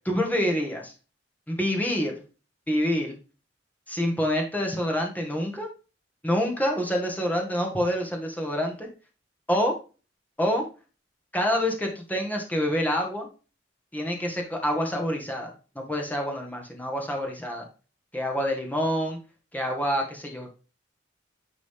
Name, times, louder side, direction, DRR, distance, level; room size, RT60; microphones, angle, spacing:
voice 1, 0.1-0.9 1.5-2.1 2.7-3.2 3.9-5.7 6.2-8.9 9.5-9.7 10.4-10.6 11.3-13.3 13.9-15.5 15.8-17.7 18.1-19.2 19.5-20.5, equal, 10° left, 1 dB, 1.7 m, -27 dB
9.9 x 3.9 x 3.6 m, 0.33 s
head